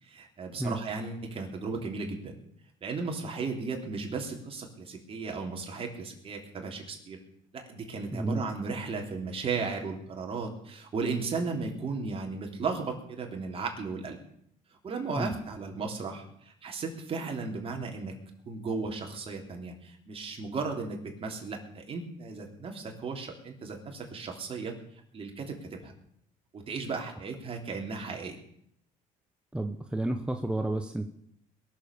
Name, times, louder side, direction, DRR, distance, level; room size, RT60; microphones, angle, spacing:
voice 1, 0.0-2.4 2.8-7.2 7.5-14.2 14.8-18.2 18.5-24.7 25.1-25.9 26.5-28.4, right 4 dB, 40° right, 2 dB, 3.4 m, -35 dB
voice 2, 8.1-8.4 15.2-15.3 29.5-31.1, right 1 dB, 5° right, 6 dB, 1.0 m, -31 dB
21.5 x 7.4 x 6.9 m, 0.71 s
cardioid pair, 105°, 15 cm